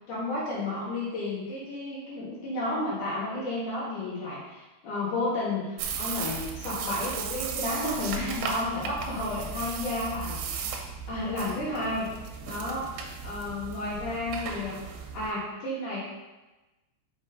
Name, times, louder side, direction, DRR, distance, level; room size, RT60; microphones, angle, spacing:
voice 1, 0.1-10.8 11.1-12.1 12.4-14.8 15.1-16.0, left 2 dB, 55° left, -7 dB, 2.6 m, -32 dB
sound 1, 5.8-15.3, right 6 dB, 80° right, 2.8 m, -36 dB
6.1 x 6.0 x 4.0 m, 1.1 s
omnidirectional pair, 5.1 m